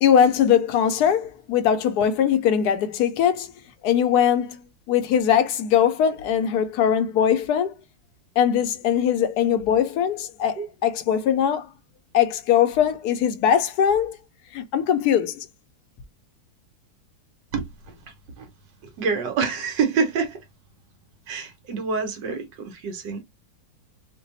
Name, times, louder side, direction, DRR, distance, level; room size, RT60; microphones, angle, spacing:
voice 1, 0.0-3.5 3.8-4.6 4.9-7.7 8.4-11.7 12.1-14.2 14.5-15.5, left 9 dB, 70° left, 1.0 m, -21 dB
voice 2, 19.0-20.4 21.3-23.2, right 5 dB, 70° right, 1.5 m, -26 dB
3.2 x 2.2 x 4.0 m
omnidirectional pair, 2.0 m